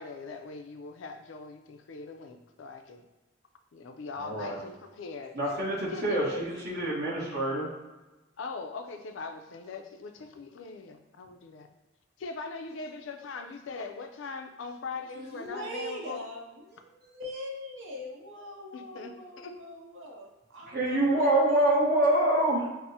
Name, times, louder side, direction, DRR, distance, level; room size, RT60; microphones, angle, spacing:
voice 1, 0.0-3.1 3.7-5.4 5.9-6.4 8.4-11.7 12.2-16.2 18.7-19.6, left 4 dB, 80° left, 6 dB, 0.4 m, -41 dB
voice 2, 4.2-4.6 5.3-7.7 20.7-22.7, right 1 dB, 55° right, -5 dB, 1.1 m, -26 dB
voice 3, 15.1-21.8, left 1 dB, 80° right, 1 dB, 0.7 m, -42 dB
5.9 x 2.0 x 2.7 m, 1.1 s
head